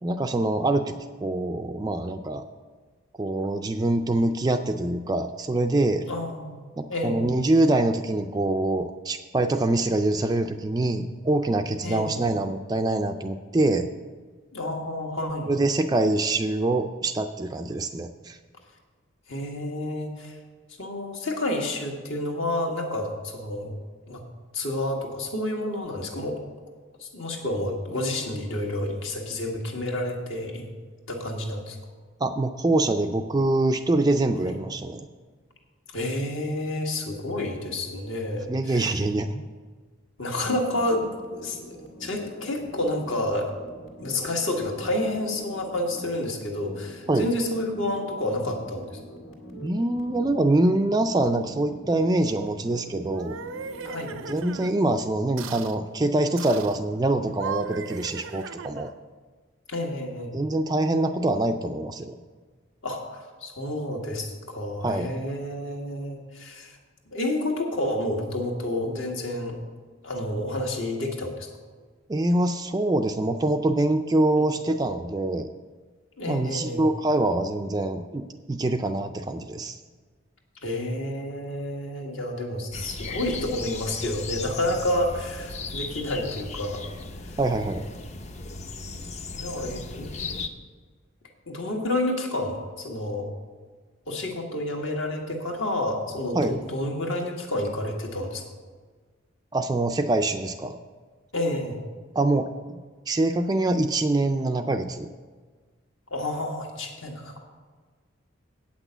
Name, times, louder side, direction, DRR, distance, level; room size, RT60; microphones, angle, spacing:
voice 1, 0.0-0.9 1.2-2.4 3.2-6.1 6.8-13.9 15.5-18.4 32.2-35.1 38.5-39.4 47.1-47.3 49.5-53.4 54.2-58.9 60.3-62.2 64.8-65.3 72.1-75.5 76.3-79.8 87.4-87.9 96.3-96.6 99.5-100.8 102.1-102.8 103.1-105.1, right 2 dB, 20° right, 6 dB, 0.3 m, -24 dB
voice 2, 6.0-7.3 11.8-12.2 14.5-15.5 19.3-20.3 20.8-23.7 24.1-24.2 24.5-26.4 27.0-30.7 31.1-31.8 34.4-34.6 35.9-38.9 40.2-43.5 44.0-48.9 53.8-54.2 59.7-60.4 62.8-66.8 67.1-69.6 70.0-71.5 74.4-74.5 76.2-76.8 80.6-86.8 89.3-90.4 91.5-93.3 94.1-98.4 101.3-101.8 106.1-107.4, left 1 dB, 70° left, 1 dB, 1.6 m, -30 dB
sound 1, 40.6-54.9, equal, 85° left, 2.1 m, -45 dB
sound 2, 53.0-54.7 55.4-55.8 56.4-56.8 57.3-59.0, right 6 dB, 80° right, 0.5 m, -37 dB
sound 3, 82.7-90.5, left 3 dB, 35° left, 0.5 m, -36 dB
8.6 x 6.0 x 8.0 m, 1.5 s
head